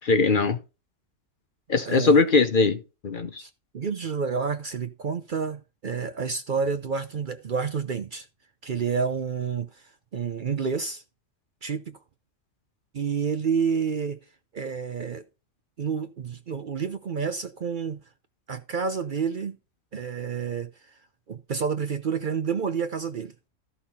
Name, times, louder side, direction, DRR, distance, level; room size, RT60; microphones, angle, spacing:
voice 1, 0.0-0.6 1.7-3.4, left 4 dB, 45° left, 0.9 m, -21 dB
voice 2, 1.8-2.2 3.4-8.3 8.6-9.8 10.1-11.0 11.6-12.0 12.9-14.2 14.5-15.2 15.8-18.0 18.5-19.6 19.9-20.7 21.3-23.3, right 6 dB, 50° right, 0.7 m, -29 dB
13.5 x 5.6 x 4.2 m
omnidirectional pair, 1.3 m